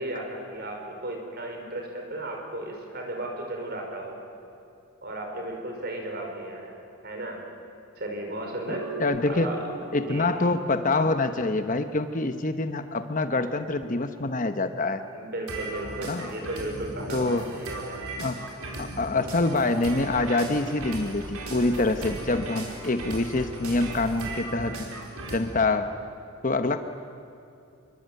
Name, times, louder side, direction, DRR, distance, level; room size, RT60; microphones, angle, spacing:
voice 1, 0.0-4.2 5.0-6.7 7.0-7.4 8.0-8.9 9.2-9.6 10.0-10.3 15.1-18.0 25.7-25.8, right 1 dB, 45° right, 2 dB, 5.3 m, -35 dB
sound 1, 8.7-10.4 15.5-25.4, right 2 dB, 80° right, 4.9 m, -37 dB
voice 2, 9.0-9.5 9.9-15.0 16.1-16.3 17.1-17.4 18.2-18.5 18.8-24.8 25.3-25.9 26.4-26.8, left 2 dB, 35° left, 9 dB, 1.0 m, -25 dB
26.5 x 22.5 x 9.3 m, 2.6 s
head